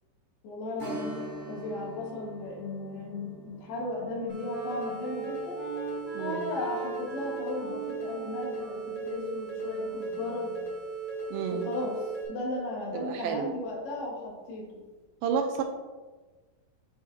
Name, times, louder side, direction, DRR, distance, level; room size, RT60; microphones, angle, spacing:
voice 1, 0.4-5.6 6.2-10.5 11.3-12.0 12.3-14.8, left 2 dB, 85° left, -3 dB, 3.5 m, -36 dB
Strum, 0.8-10.0 10.3-10.4 13.0-13.1 13.6-13.7, right 1 dB, 60° right, 2.6 m, -46 dB
Wind instrument woodwind instrument, 2.9-10.7, right 1 dB, 60° left, 1.0 m, -44 dB
sound 1, 4.3-12.3, right 4 dB, 25° left, 1.1 m, -37 dB
voice 2, 6.1-6.5 11.3-11.7 12.9-13.5 15.2-15.6, right 6 dB, 80° right, 4 dB, 2.3 m, -30 dB
7.9 x 5.1 x 2.7 m, 1.3 s
omnidirectional pair, 4.4 m